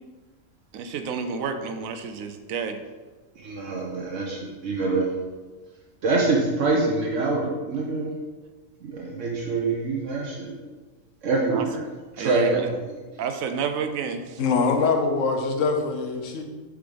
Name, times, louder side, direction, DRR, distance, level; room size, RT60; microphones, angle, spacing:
voice 1, 0.7-2.8 11.5-11.6 12.2-12.7 13.2-14.4, right 6 dB, 90° right, 8 dB, 1.1 m, -30 dB
voice 2, 3.4-5.1 6.0-8.1 8.8-10.5 11.2-11.8 12.1-12.7, right 3 dB, 70° right, -2 dB, 1.2 m, -25 dB
voice 3, 14.4-16.4, left 4 dB, 70° left, 4 dB, 1.1 m, -23 dB
7.0 x 4.7 x 3.9 m, 1.3 s
omnidirectional pair, 1.4 m